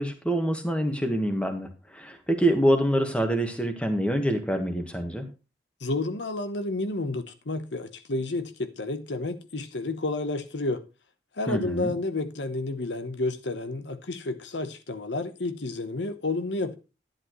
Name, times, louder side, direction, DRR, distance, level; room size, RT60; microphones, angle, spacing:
voice 1, 0.0-5.3 11.5-11.9, equal, 5° left, 1.5 m, -26 dB
voice 2, 5.8-10.8 11.4-16.7, left 2 dB, 80° left, 1.0 m, -30 dB
11.0 x 10.5 x 3.1 m
head